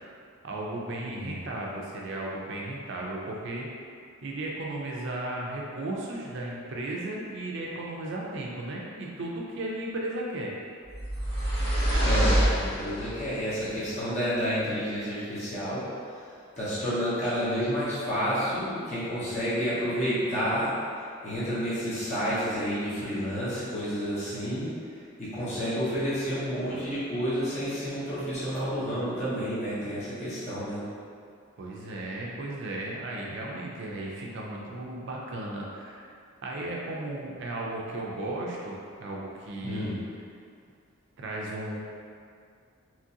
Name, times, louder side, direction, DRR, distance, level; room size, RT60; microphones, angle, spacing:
voice 1, 0.4-3.7 4.2-10.5 31.6-36.1 36.4-39.9 41.2-41.8, right 1 dB, 55° right, -3 dB, 0.4 m, -35 dB
voice 2, 1.0-1.4 12.0-15.8 16.6-20.7 21.0-24.7 25.2-30.8 39.6-40.0, equal, 30° left, -11 dB, 0.7 m, -30 dB
sound 1, 10.9-13.3, right 1 dB, 85° left, 1.2 m, -25 dB
2.9 x 2.5 x 2.7 m, 2.3 s
head